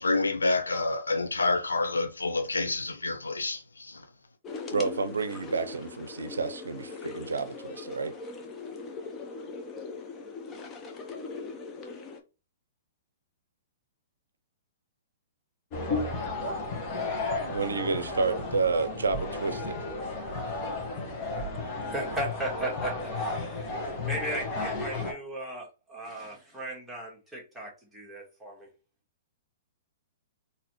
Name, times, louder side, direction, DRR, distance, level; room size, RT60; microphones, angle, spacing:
voice 1, 0.0-3.6 3.9-4.0, left 3 dB, 85° left, 0.7 m, -28 dB
sound 1, 4.4-12.2, left 4 dB, 20° left, 0.8 m, -40 dB
voice 2, 4.7-8.1 17.4-19.8, right 4 dB, 80° right, 0.5 m, -30 dB
sound 2, 15.7-25.1, left 3 dB, 40° left, 1.2 m, -33 dB
voice 3, 21.9-28.7, right 1 dB, ahead, 1.6 m, -36 dB
3.9 x 2.8 x 3.0 m
figure-of-eight pair, 115°, 0 cm